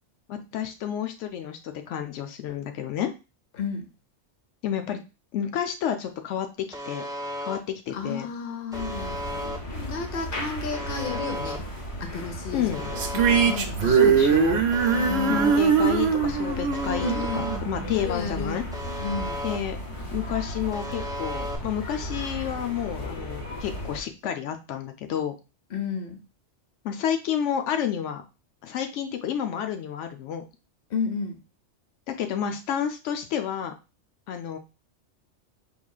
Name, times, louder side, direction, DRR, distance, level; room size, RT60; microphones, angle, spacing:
voice 1, 0.3-3.1 4.6-5.0 5.3-6.5 6.9-7.0 7.4-8.3 12.5-12.8 13.8-14.6 15.3-18.6 19.4-19.8 20.1-25.3 26.8-28.2 28.6-30.4 32.1-33.7 34.3-34.6, left 9 dB, 90° left, 7 dB, 0.9 m, -30 dB
voice 2, 3.6-3.9 7.9-9.2 9.7-11.6 12.0-14.6 14.9-15.5 17.0-17.5 17.9-18.6 19.0-19.4 25.7-26.2 30.9-31.4, left 5 dB, 55° left, 5 dB, 1.0 m, -32 dB
Alarm, 6.7-7.6 8.7-9.6 10.7-11.6 12.7-13.6 14.7-15.6 16.7-17.6 18.7-19.6 20.7-21.6, equal, 5° right, 0.3 m, -34 dB
sound 1, 8.7-24.0, left 1 dB, 35° left, 0.6 m, -35 dB
sound 2, 13.0-18.3, right 6 dB, 65° right, 0.8 m, -22 dB
4.7 x 3.6 x 2.3 m, 0.29 s
omnidirectional pair, 1.2 m